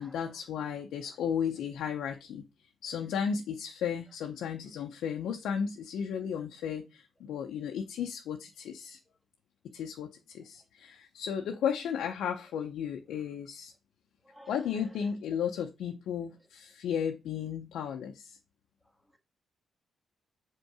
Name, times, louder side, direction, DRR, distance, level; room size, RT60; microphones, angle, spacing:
voice 1, 0.0-2.4 2.8-9.0 9.7-13.7 14.5-18.4, left 7 dB, 85° left, 0.6 m, -34 dB
voice 2, 14.2-15.0, equal, 5° right, 1.5 m, -54 dB
5.3 x 3.7 x 4.8 m
cardioid pair, 65°, 0 cm